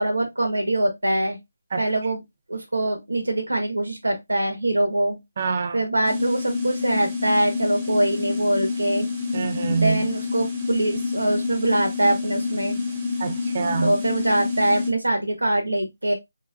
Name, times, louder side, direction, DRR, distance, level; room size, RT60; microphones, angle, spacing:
voice 1, 0.0-1.4 1.8-2.2 2.5-5.2 5.7-9.1 9.7-12.8 13.8-16.1, right 1 dB, 90° right, 1.3 m, -23 dB
voice 2, 5.4-5.8 9.3-10.1 13.2-13.9, right 5 dB, 45° right, 0.5 m, -25 dB
sound 1, 6.0-14.9, left 4 dB, 20° right, 1.3 m, -28 dB
3.9 x 3.1 x 2.3 m
figure-of-eight pair, 155°, 0 cm